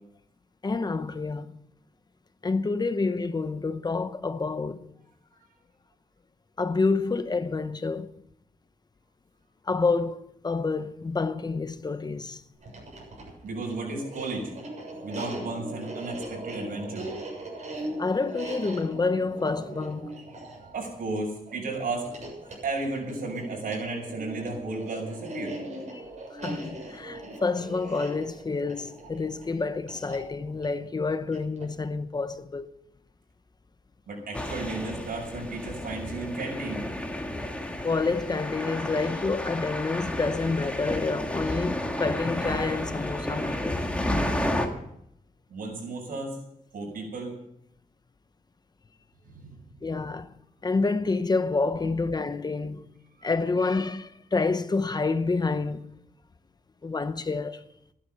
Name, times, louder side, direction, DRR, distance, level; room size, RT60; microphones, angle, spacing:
voice 1, 0.6-1.6 2.4-4.9 6.6-8.1 9.6-12.4 18.0-20.2 25.9-26.0 26.3-32.7 37.8-43.8 49.8-50.4 50.6-53.0 53.2-55.9 56.8-57.7, left 3 dB, 30° left, 0.8 m, -28 dB
sound 1, 12.5-31.8, right 1 dB, 55° right, 7.4 m, -40 dB
voice 2, 13.4-14.5 15.0-17.1 20.6-22.1 22.6-25.6 34.1-36.9 45.5-46.4 46.7-47.4 49.2-49.7 51.8-51.9 53.2-53.3, right 3 dB, 90° right, 6.7 m, -34 dB
sound 2, 34.3-44.7, left 1 dB, 10° left, 1.9 m, -31 dB
15.0 x 11.5 x 6.8 m
wide cardioid pair, 125°, 15 cm